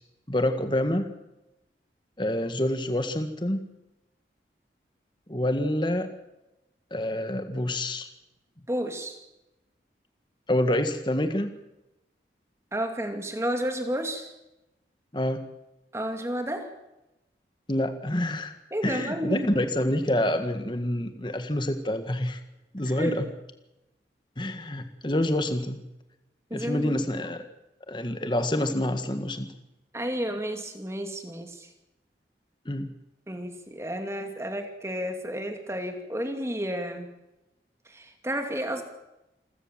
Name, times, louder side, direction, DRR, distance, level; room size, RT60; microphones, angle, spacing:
voice 1, 0.3-1.1 2.2-3.6 5.3-6.1 6.9-8.1 10.5-11.5 15.1-15.4 17.7-18.5 18.8-22.4 22.7-23.3 24.4-25.8 26.5-27.4 27.9-29.5 32.6-32.9, left 1 dB, 25° left, 7 dB, 1.7 m, -27 dB
voice 2, 8.7-9.2 12.7-14.3 15.9-16.7 18.7-19.5 22.9-23.2 26.5-27.0 29.9-31.7 33.3-37.1 37.9-38.8, equal, 15° right, 5 dB, 2.6 m, -31 dB
28.5 x 14.0 x 7.5 m, 0.93 s
head